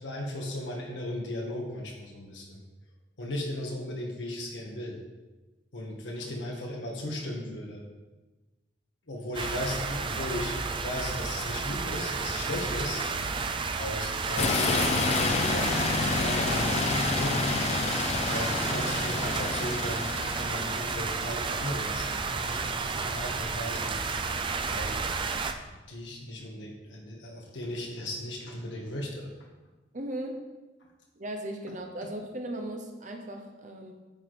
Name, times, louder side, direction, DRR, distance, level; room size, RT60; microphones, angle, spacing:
voice 1, 0.0-2.6 3.2-5.0 5.7-7.8 9.1-13.0 13.7-15.0 15.5-15.8 16.2-17.6 18.3-23.9 24.7-24.9 25.7-29.3, left 1 dB, 80° left, 0 dB, 1.3 m, -36 dB
sound 1, 9.3-25.5, right 4 dB, 25° right, 0.4 m, -31 dB
sound 2, 14.4-20.9, left 4 dB, 35° left, 0.5 m, -29 dB
voice 2, 29.9-30.4 31.2-33.9, right 1 dB, 40° right, 3 dB, 1.0 m, -37 dB
8.9 x 4.0 x 4.9 m, 1.2 s
head